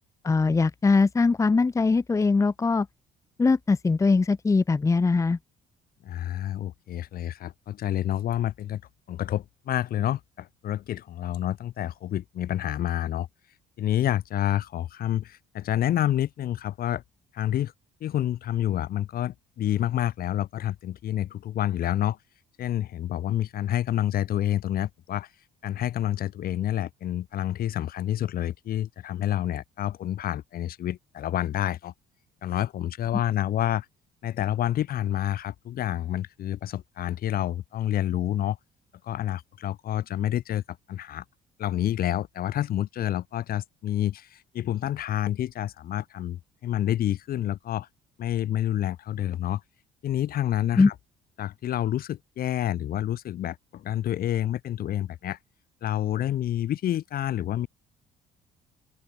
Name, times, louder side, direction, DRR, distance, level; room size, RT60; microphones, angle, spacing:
voice 1, 0.2-2.9 3.4-5.4 50.8-50.9, left 4 dB, 20° left, 0.9 m, -21 dB
voice 2, 6.0-8.8 9.1-13.3 13.8-17.0 17.3-17.7 18.0-22.2 22.6-25.3 25.6-31.9 32.4-33.9 34.2-38.6 39.0-40.6 40.9-41.2 41.6-47.9 48.2-49.6 50.0-50.9 51.4-55.4 55.8-57.7, left 12 dB, 60° left, 2.8 m, -28 dB
open air
cardioid pair, 110°, 17 cm